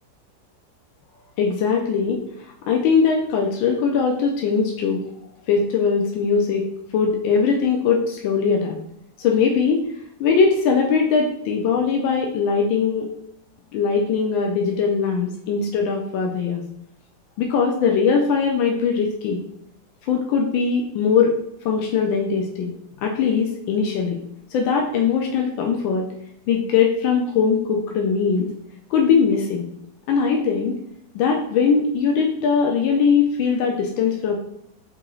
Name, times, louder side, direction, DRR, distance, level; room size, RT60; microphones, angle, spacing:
voice 1, 1.4-2.2 2.7-5.0 5.5-6.6 6.9-8.7 9.2-9.8 10.2-13.1 13.7-16.6 17.4-19.4 20.1-21.3 21.6-22.7 23.0-24.2 24.5-26.0 26.5-28.5 28.9-29.6 30.1-30.8 31.1-34.3, left 5 dB, 85° left, 1 dB, 1.4 m, -20 dB
4.3 x 2.8 x 3.8 m, 0.76 s
omnidirectional pair, 2.1 m